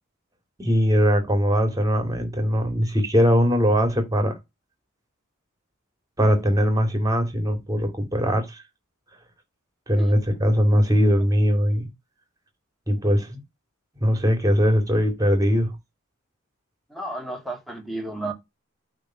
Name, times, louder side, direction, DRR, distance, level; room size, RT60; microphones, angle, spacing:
voice 1, 0.6-4.4 6.2-8.6 9.9-11.9 12.9-13.4 14.0-15.8, equal, 15° right, 2.7 m, -21 dB
voice 2, 16.9-18.3, right 2 dB, ahead, 2.3 m, -32 dB
8.8 x 3.9 x 6.0 m
head